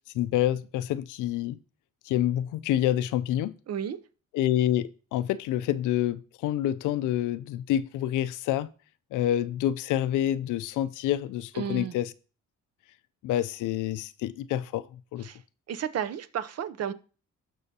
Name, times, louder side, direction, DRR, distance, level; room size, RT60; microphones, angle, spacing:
voice 1, 0.1-1.6 2.1-3.6 4.3-8.7 9.1-12.1 13.2-15.3, left 12 dB, 85° left, 0.5 m, -27 dB
voice 2, 3.7-4.0 11.5-11.9 15.2-15.4 15.7-16.9, right 8 dB, 55° right, 0.7 m, -32 dB
15.5 x 5.6 x 2.8 m
cardioid pair, 90°, 30 cm